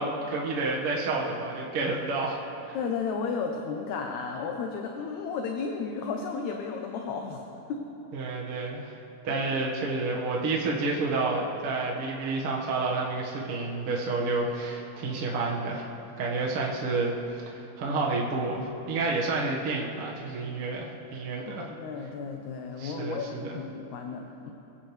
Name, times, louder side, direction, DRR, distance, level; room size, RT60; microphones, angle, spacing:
voice 1, 0.0-2.4 2.7-2.8 8.1-8.9 9.2-15.9 16.2-17.2 17.5-21.7 22.8-23.6, right 3 dB, 50° right, -3 dB, 2.1 m, -30 dB
voice 2, 2.7-7.4 7.7-7.8 9.3-10.0 21.5-24.5, left 5 dB, 70° left, 3 dB, 2.0 m, -34 dB
23.5 x 16.5 x 3.3 m, 2.9 s
omnidirectional pair, 3.8 m